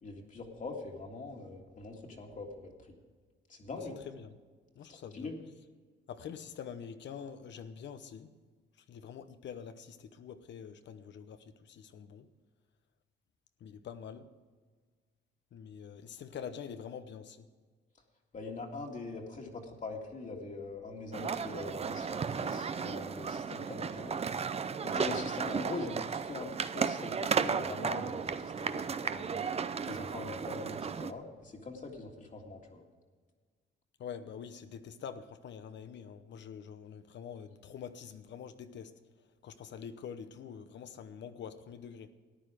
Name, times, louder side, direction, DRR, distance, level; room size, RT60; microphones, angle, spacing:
voice 1, 0.0-2.9 3.5-4.0 4.9-5.4 18.3-24.2 24.8-29.5 29.9-32.8, left 3 dB, 40° left, 2.1 m, -43 dB
voice 2, 4.8-5.3 6.1-8.3 8.9-12.3 13.6-14.3 15.5-17.5 34.0-38.9 39.4-42.1, left 7 dB, 65° left, 0.9 m, -45 dB
sound 1, 21.1-31.1, right 6 dB, 30° right, 0.6 m, -34 dB
14.0 x 9.8 x 5.0 m
cardioid pair, 90°, 20 cm